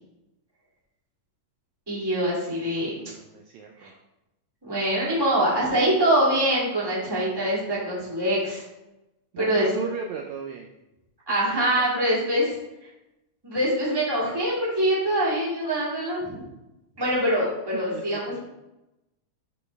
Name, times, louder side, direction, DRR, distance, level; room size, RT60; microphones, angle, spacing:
voice 1, 1.9-2.9 3.8-3.9 4.6-8.6 9.4-9.7 11.3-12.4 13.4-16.4 17.0-18.4, right 1 dB, 10° right, -6 dB, 2.0 m, -24 dB
voice 2, 2.6-3.9 7.0-7.2 9.3-10.7 11.8-12.1 17.9-18.0 18.3-18.4, right 5 dB, 80° right, 2 dB, 1.8 m, -36 dB
10.5 x 4.2 x 3.4 m, 0.95 s
omnidirectional pair, 3.7 m